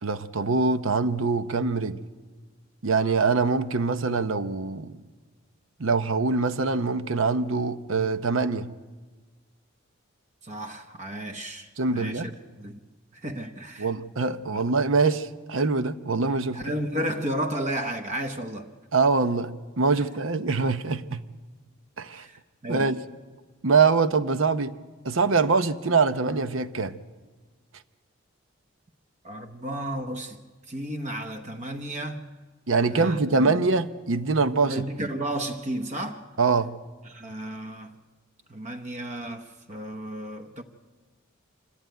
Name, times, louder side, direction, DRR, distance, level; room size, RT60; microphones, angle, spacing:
voice 1, 0.0-2.0 2.8-4.9 5.8-8.7 11.8-12.3 13.8-16.6 18.9-19.5 19.8-21.2 22.0-22.3 22.7-23.0 23.6-24.7 25.0-26.9 32.7-35.1 36.4-36.7, right 4 dB, 75° right, 0.8 m, -24 dB
voice 2, 10.4-12.3 12.6-12.8 13.1-13.9 14.5-14.6 16.5-18.7 22.1-23.0 29.2-30.4 30.7-32.2 32.9-33.6 34.7-36.2 37.0-38.0 38.5-40.6, right 1 dB, 35° right, 1.0 m, -33 dB
25.5 x 13.5 x 9.2 m
head